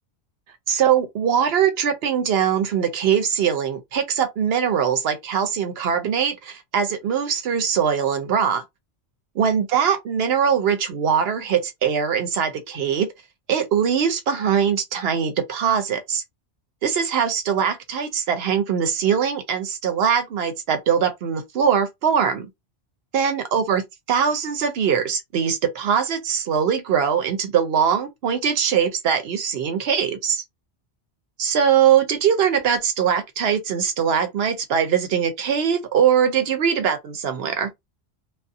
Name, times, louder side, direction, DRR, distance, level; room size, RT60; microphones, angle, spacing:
voice 1, 0.7-8.6 9.4-13.1 13.5-16.2 16.8-22.5 23.1-23.8 24.1-30.4 31.4-37.7, right 7 dB, 65° right, 0.8 m, -21 dB
2.6 x 2.3 x 2.4 m
omnidirectional pair, 1.2 m